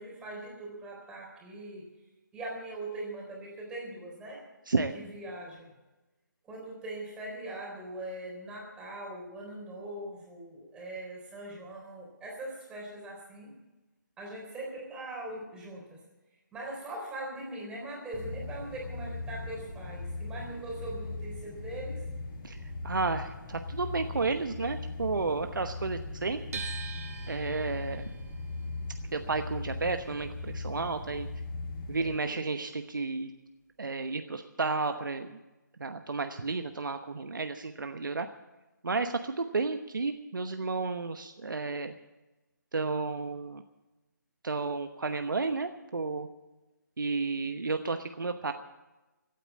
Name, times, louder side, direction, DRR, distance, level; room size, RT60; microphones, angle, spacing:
voice 1, 0.0-1.9 2.3-4.4 4.9-5.7 6.4-13.5 14.2-16.0 16.5-22.0 32.0-32.4, right 1 dB, 10° right, -2 dB, 3.9 m, -41 dB
sound 1, 18.1-32.1, left 3 dB, 25° left, 6.3 m, -39 dB
voice 2, 22.8-26.6 27.3-28.0 29.1-31.3 31.9-33.3 33.8-35.4 35.8-38.3 38.8-41.9 42.7-43.6 44.4-46.3 47.0-48.5, right 3 dB, 80° right, 7 dB, 1.0 m, -32 dB
sound 2, 26.5-32.6 32.8-34.1, right 6 dB, 50° right, 1.6 m, -46 dB
16.5 x 9.0 x 8.4 m, 1.1 s
figure-of-eight pair, 155°, 10 cm